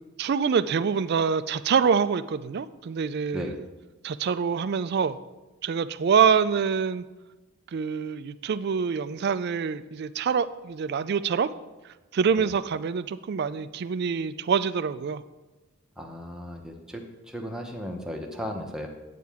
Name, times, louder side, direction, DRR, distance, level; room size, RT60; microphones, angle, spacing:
voice 1, 0.2-3.6 4.0-5.2 5.6-7.0 7.7-11.5 12.1-15.2, right 6 dB, 45° right, 14 dB, 0.3 m, -25 dB
voice 2, 16.0-18.9, equal, 5° right, 1 dB, 0.8 m, -36 dB
9.4 x 8.4 x 3.5 m, 1.1 s
head